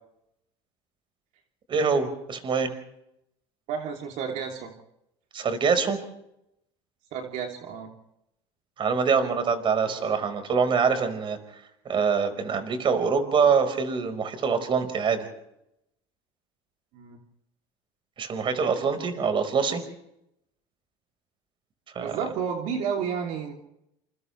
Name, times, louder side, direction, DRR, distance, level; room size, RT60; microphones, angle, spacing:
voice 1, 1.7-2.7 5.3-6.0 8.8-11.4 11.8-15.3 18.2-19.8 21.9-22.2, right 5 dB, 40° right, 8 dB, 4.9 m, -24 dB
voice 2, 3.7-4.7 7.1-7.9 9.9-10.1 16.9-17.2 22.0-23.5, right 7 dB, 65° right, 1 dB, 3.2 m, -31 dB
29.0 x 28.0 x 3.4 m, 0.82 s
supercardioid pair, 105°, 13 cm